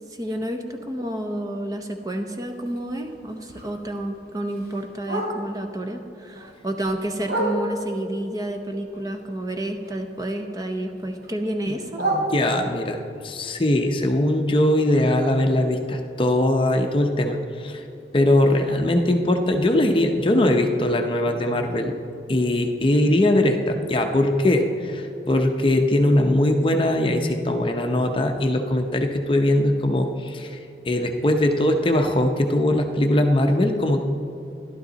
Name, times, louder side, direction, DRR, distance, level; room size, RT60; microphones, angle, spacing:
voice 1, 0.1-12.0, right 1 dB, 20° right, 5 dB, 0.7 m, -30 dB
Bark, 2.5-5.7 6.1-8.0 8.5-10.3 10.6-12.9 13.3-17.3 17.6-17.7 18.0-18.4 18.8-18.9 19.3-19.4 19.9-20.0, right 1 dB, 80° right, 2.8 m, -33 dB
voice 2, 11.7-17.8 18.1-21.9 22.3-30.6 30.8-34.0, left 1 dB, 30° left, 4 dB, 0.6 m, -21 dB
12.5 x 12.0 x 4.0 m, 2.6 s
head